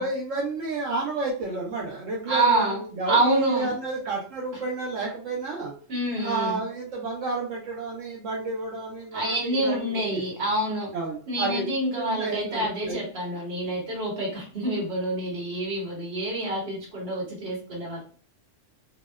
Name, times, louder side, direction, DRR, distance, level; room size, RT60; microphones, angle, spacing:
voice 1, 0.0-5.7 6.2-10.2 10.9-11.6 12.0-13.0, right 3 dB, 80° right, -2 dB, 1.0 m, -31 dB
voice 2, 2.3-2.8 3.1-3.7 5.9-6.6 9.1-10.9 11.3-18.0, right 1 dB, 55° right, -3 dB, 1.3 m, -27 dB
2.7 x 2.1 x 2.2 m, 0.42 s
omnidirectional pair, 1.3 m